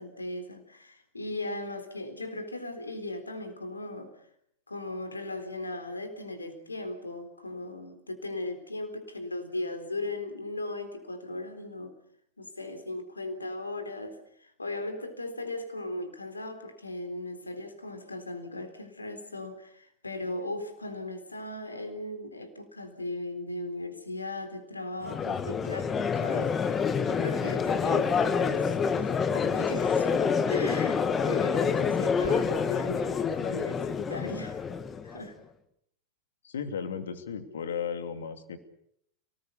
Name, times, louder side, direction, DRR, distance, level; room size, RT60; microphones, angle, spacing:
voice 1, 0.0-4.1 4.7-12.0 12.4-26.6 27.0-30.2 30.5-34.6 35.0-35.4, left 2 dB, 80° left, 8 dB, 3.8 m, -37 dB
Crowd, 25.0-35.2, left 6 dB, 20° left, 2.0 m, -27 dB
voice 2, 36.4-38.6, left 7 dB, 65° left, 8 dB, 2.8 m, -35 dB
30.0 x 19.5 x 7.1 m, 0.74 s
figure-of-eight pair, 90°, 0 cm